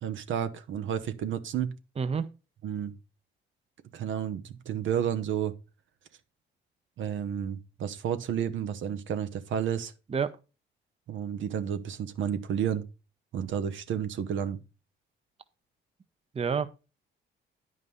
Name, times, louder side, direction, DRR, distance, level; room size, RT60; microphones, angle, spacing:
voice 1, 0.0-1.8 2.6-2.9 3.9-5.5 7.0-9.9 11.1-12.8 13.3-14.6, right 9 dB, 75° right, 1.0 m, -31 dB
voice 2, 2.0-2.3 10.1-10.4 16.3-16.7, right 6 dB, 30° right, 0.7 m, -28 dB
9.6 x 5.3 x 5.4 m
cardioid pair, 90°, 20 cm